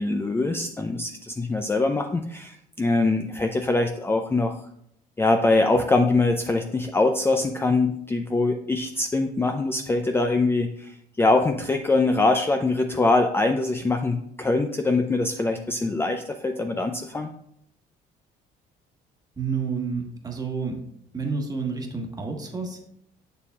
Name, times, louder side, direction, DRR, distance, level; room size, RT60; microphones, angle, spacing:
voice 1, 0.0-4.6 5.2-17.3, left 2 dB, 15° left, 5 dB, 0.4 m, -23 dB
voice 2, 19.4-20.8 21.1-22.8, right 5 dB, 20° right, 1 dB, 1.3 m, -29 dB
7.1 x 6.7 x 2.4 m, 0.72 s
cardioid pair, 110°, 17 cm